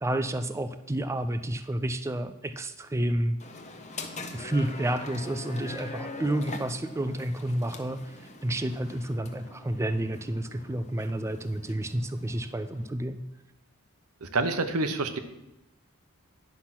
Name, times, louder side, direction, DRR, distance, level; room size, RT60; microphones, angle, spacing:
voice 1, 0.0-3.4 4.3-13.3, right 1 dB, 15° right, 9 dB, 0.4 m, -30 dB
sound 1, 3.4-12.9, left 2 dB, 35° left, 0.9 m, -42 dB
voice 2, 14.2-15.2, right 3 dB, 80° right, 9 dB, 0.9 m, -27 dB
10.0 x 5.9 x 5.8 m, 0.94 s
head